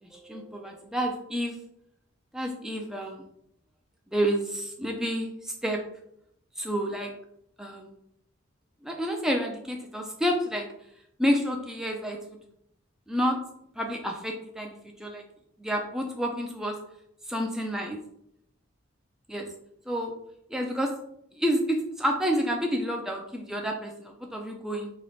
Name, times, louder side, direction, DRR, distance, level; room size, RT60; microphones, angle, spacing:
voice 1, 0.0-1.6 2.3-3.2 4.1-5.8 6.6-7.1 7.6-8.0 8.8-10.7 11.2-12.4 13.1-13.4 13.8-15.2 15.6-16.8 17.3-18.0 19.3-19.5 19.9-20.1 20.5-20.9 21.3-24.9, equal, 5° right, 1 dB, 0.5 m, -29 dB
3.1 x 2.5 x 4.1 m, 0.73 s
head